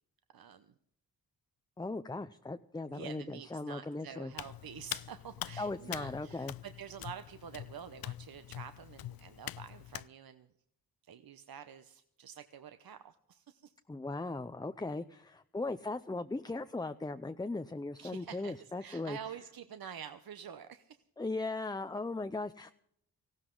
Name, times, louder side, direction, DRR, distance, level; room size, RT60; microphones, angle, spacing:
voice 1, 0.3-0.7 2.9-10.5 11.1-13.7 18.0-21.0, right 8 dB, 65° right, 10 dB, 0.9 m, -48 dB
voice 2, 1.8-4.3 5.6-6.5 13.9-19.2 21.2-22.7, left 2 dB, 10° left, 9 dB, 0.5 m, -38 dB
Hands, 4.3-10.1, left 13 dB, 65° left, 0.5 m, -44 dB
18.5 x 15.5 x 3.8 m, 0.71 s
cardioid pair, 85°, 39 cm